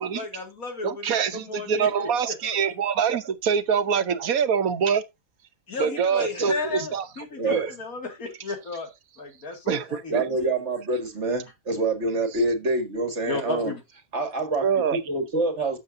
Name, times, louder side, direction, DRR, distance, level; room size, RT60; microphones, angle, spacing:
voice 1, 0.0-2.6 5.7-8.9 9.2-10.4 13.3-13.8, left 4 dB, 90° left, 2.7 m, -34 dB
voice 2, 0.8-5.0 5.8-7.7 9.7-10.2 14.6-15.0, right 7 dB, 85° right, 1.4 m, -25 dB
voice 3, 10.1-13.7 14.1-15.8, right 2 dB, 55° right, 2.1 m, -26 dB
12.0 x 7.2 x 2.6 m
omnidirectional pair, 1.5 m